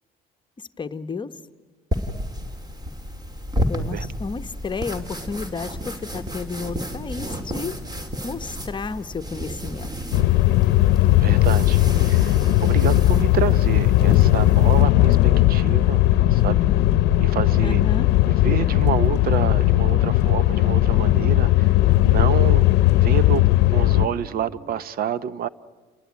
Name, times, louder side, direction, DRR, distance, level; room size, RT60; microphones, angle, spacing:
voice 1, 0.6-1.4 3.7-7.8 8.2-9.9 17.6-18.1, left 4 dB, 25° left, 1.0 m, -32 dB
sound 1, 1.9-14.8, equal, 25° right, 3.0 m, -32 dB
sound 2, 10.1-24.1, left 15 dB, 90° left, 0.7 m, -17 dB
sound 3, 10.9-24.8, left 1 dB, 5° left, 5.9 m, -45 dB
voice 2, 11.2-12.4 12.6-16.0 16.3-16.7 17.2-17.8 18.3-21.7 22.0-23.4 23.7-25.5, right 9 dB, 60° right, 0.8 m, -28 dB
29.5 x 20.0 x 9.6 m
cardioid pair, 110°, 17 cm